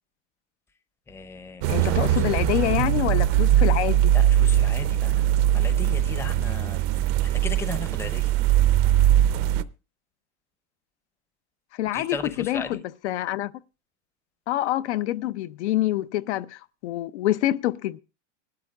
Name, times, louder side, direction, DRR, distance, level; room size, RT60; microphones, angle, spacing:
voice 1, 1.1-2.5 4.1-5.2 5.5-8.3 11.9-12.8, left 3 dB, 5° left, 0.6 m, -37 dB
sound 1, 1.6-9.6, right 12 dB, 40° right, 0.6 m, -21 dB
voice 2, 1.7-4.1 11.7-13.5 14.5-18.0, left 14 dB, 70° left, 0.7 m, -26 dB
21.0 x 12.5 x 2.3 m
supercardioid pair, 150°, 36 cm